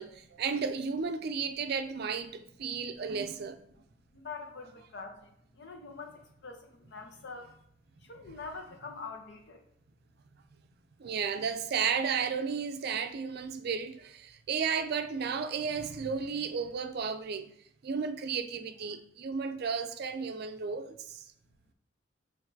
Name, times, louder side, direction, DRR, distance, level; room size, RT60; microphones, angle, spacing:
voice 1, 0.0-3.6 8.3-8.4 11.0-17.5 17.8-21.2, right 6 dB, 60° right, 0.4 m, -33 dB
voice 2, 4.1-7.5 8.0-9.6, left 4 dB, 65° left, 0.8 m, -44 dB
5.9 x 2.6 x 2.7 m
head